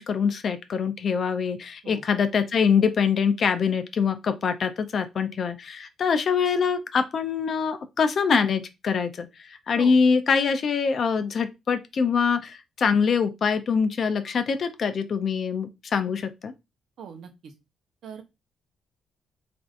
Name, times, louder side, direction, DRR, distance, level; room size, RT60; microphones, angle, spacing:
voice 1, 0.0-16.5, left 6 dB, 50° left, 0.4 m, -24 dB
voice 2, 17.0-17.5 18.0-18.2, right 7 dB, 70° right, 0.7 m, -41 dB
3.4 x 2.5 x 2.4 m
cardioid pair, 90°, 0 cm